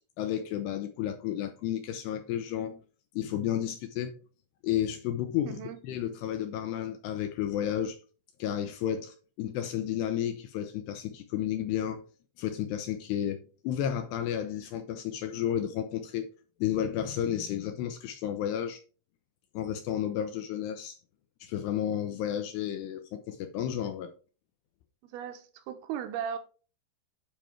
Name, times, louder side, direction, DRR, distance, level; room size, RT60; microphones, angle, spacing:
voice 1, 0.2-2.8 3.2-4.1 4.6-8.0 8.4-12.0 12.4-16.3 16.6-18.8 19.5-21.0 21.4-24.1, left 10 dB, 80° left, 2.6 m, -32 dB
voice 2, 5.5-5.8 25.0-26.4, right 8 dB, 75° right, 2.5 m, -37 dB
8.9 x 5.2 x 4.4 m
omnidirectional pair, 5.4 m